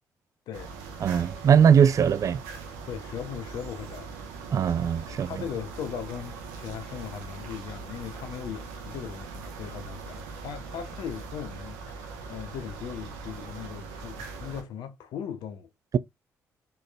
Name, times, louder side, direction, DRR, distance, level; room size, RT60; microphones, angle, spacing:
voice 1, 0.5-0.8 2.9-4.2 5.1-15.7, left 8 dB, 70° left, 0.6 m, -38 dB
sound 1, 0.5-14.6, right 4 dB, 80° right, 0.8 m, -41 dB
voice 2, 1.0-2.4 4.5-5.3, right 7 dB, 45° right, 0.4 m, -20 dB
4.3 x 3.2 x 2.2 m
hypercardioid pair, 50°, 8 cm